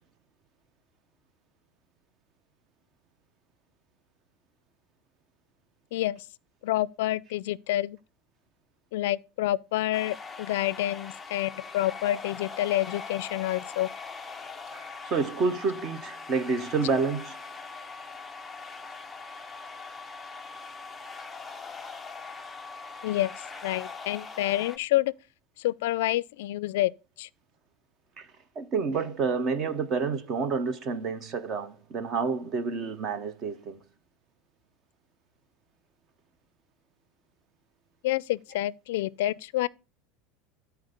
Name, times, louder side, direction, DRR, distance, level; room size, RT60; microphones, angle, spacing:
voice 1, 5.9-6.2 6.6-8.0 8.9-13.9 23.0-23.3 23.6-25.1 25.6-26.9 27.2-27.3 38.0-39.7, left 15 dB, 75° left, 0.4 m, -28 dB
sound 1, 9.9-24.8, left 4 dB, 10° left, 0.5 m, -41 dB
voice 2, 15.1-17.4 28.2-28.3 28.6-33.8, right 4 dB, 25° right, 0.8 m, -29 dB
13.5 x 4.5 x 5.1 m
supercardioid pair, 175°, 0 cm